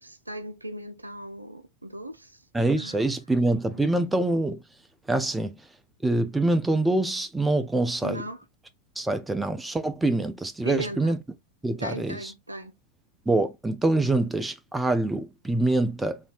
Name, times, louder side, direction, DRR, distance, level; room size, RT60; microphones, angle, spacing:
voice 1, 0.0-2.4 2.8-3.0 8.0-8.4 10.6-11.2 11.8-12.7, right 1 dB, 85° right, 0.4 m, -37 dB
voice 2, 2.5-4.6 5.1-5.6 6.0-8.2 9.0-11.2 11.6-12.3 13.3-16.2, right 2 dB, 10° right, 0.4 m, -25 dB
3.2 x 2.7 x 2.4 m
figure-of-eight pair, 90°, 0 cm